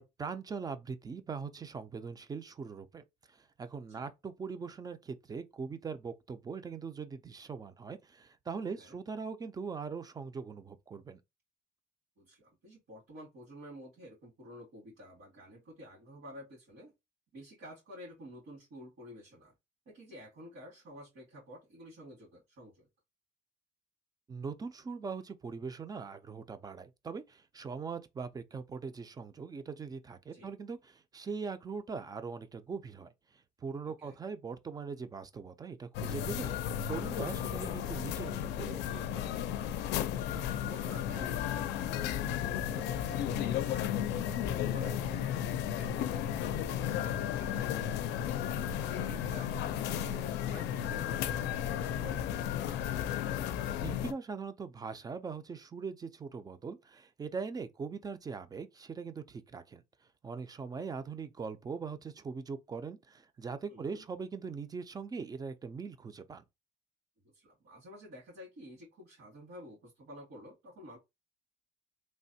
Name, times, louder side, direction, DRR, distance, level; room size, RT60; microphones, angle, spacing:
voice 1, 0.0-11.2 24.3-33.1 33.6-39.3 53.8-59.8 60.2-66.4, right 5 dB, 20° right, 0.4 m, -41 dB
voice 2, 12.2-16.9 17.3-19.5 19.9-22.9 30.3-30.5 33.8-34.2 40.0-43.9 44.3-46.2 46.5-48.1 48.8-52.4 63.7-64.0 67.2-71.0, equal, 70° right, 1.9 m, -50 dB
sound 1, 35.9-54.1, left 10 dB, 85° left, 0.4 m, -34 dB
3.2 x 2.1 x 2.7 m
cardioid pair, 110°, 17 cm